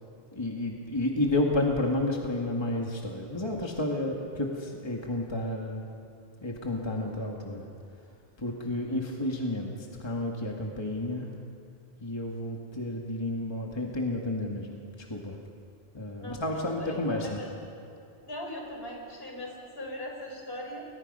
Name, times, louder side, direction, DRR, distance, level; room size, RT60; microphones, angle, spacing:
voice 1, 0.3-5.9 6.4-7.7 8.4-11.3 12.0-14.8 15.1-15.4 15.9-17.4, left 1 dB, 25° left, 0 dB, 1.9 m, -31 dB
voice 2, 16.2-17.5 18.2-20.8, left 1 dB, 60° left, 0 dB, 4.7 m, -40 dB
29.5 x 22.5 x 5.5 m, 2.5 s
omnidirectional pair, 1.1 m